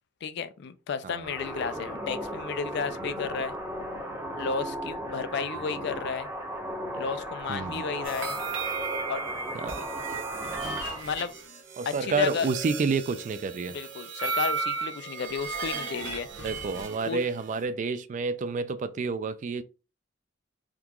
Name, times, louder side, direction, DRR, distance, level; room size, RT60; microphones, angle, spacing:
voice 1, 0.2-3.5 4.4-6.3 6.9-8.4 9.1-9.2 10.9-11.3 11.9-12.5 13.7-16.5 17.1-17.2, left 6 dB, 60° left, 0.4 m, -33 dB
sound 1, 1.2-11.0, equal, 15° right, 0.7 m, -36 dB
voice 2, 7.5-7.8 9.5-9.9 11.8-13.8 16.4-19.6, right 4 dB, 40° right, 0.3 m, -29 dB
sound 2, 8.0-17.6, right 4 dB, 80° right, 0.9 m, -35 dB
3.7 x 2.4 x 2.9 m
head